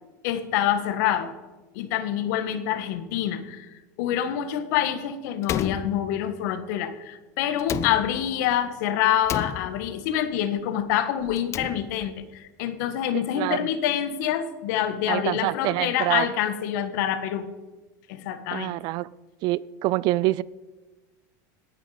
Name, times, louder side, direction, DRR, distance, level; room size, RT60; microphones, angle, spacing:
voice 1, 0.2-1.3 1.7-3.7 4.0-17.5 18.1-18.7, left 10 dB, 65° left, 10 dB, 1.6 m, -26 dB
Slam, 5.4-6.6 7.6-8.5 9.3-10.2 11.3-12.2, left 10 dB, 25° left, 0.4 m, -33 dB
voice 2, 13.3-13.7 15.1-16.3 18.5-19.1 19.4-20.4, right 17 dB, 45° right, 21 dB, 0.4 m, -26 dB
18.5 x 9.2 x 5.1 m, 1.2 s
supercardioid pair, 145°, 10 cm